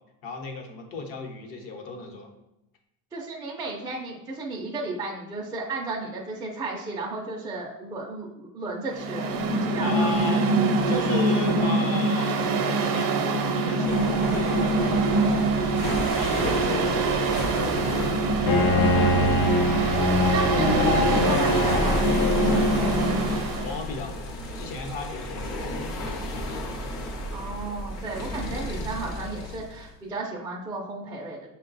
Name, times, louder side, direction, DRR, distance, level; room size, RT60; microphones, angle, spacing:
voice 1, 0.2-2.3 9.8-19.5 23.6-26.6 27.8-27.9, left 4 dB, 65° left, 3 dB, 0.9 m, -36 dB
voice 2, 3.1-9.3 9.6-10.1 20.3-23.2 27.3-31.4, right 3 dB, 10° right, -3 dB, 0.4 m, -34 dB
Mechanical fan, 8.9-23.7, right 3 dB, 65° right, 0.7 m, -24 dB
sound 1, 13.8-29.9, left 1 dB, 45° left, 0.7 m, -32 dB
Bowed string instrument, 18.5-23.2, left 2 dB, 90° left, 0.7 m, -24 dB
6.0 x 2.2 x 3.9 m, 0.90 s
cardioid pair, 170°, 37 cm